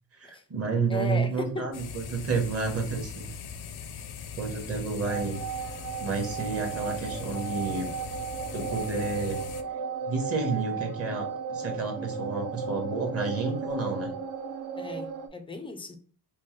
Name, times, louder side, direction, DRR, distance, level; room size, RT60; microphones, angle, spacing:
voice 1, 0.2-3.3 4.3-5.4 6.0-7.9 8.5-9.4 10.1-14.1, right 4 dB, 35° right, 1.0 m, -30 dB
voice 2, 0.9-1.7 10.5-10.6 14.8-16.0, left 3 dB, 15° left, 0.3 m, -36 dB
sound 1, 1.7-9.6, left 7 dB, 65° left, 0.5 m, -41 dB
sound 2, 5.0-15.3, right 6 dB, 50° right, 0.5 m, -35 dB
4.5 x 2.1 x 3.0 m
cardioid pair, 165°, 42 cm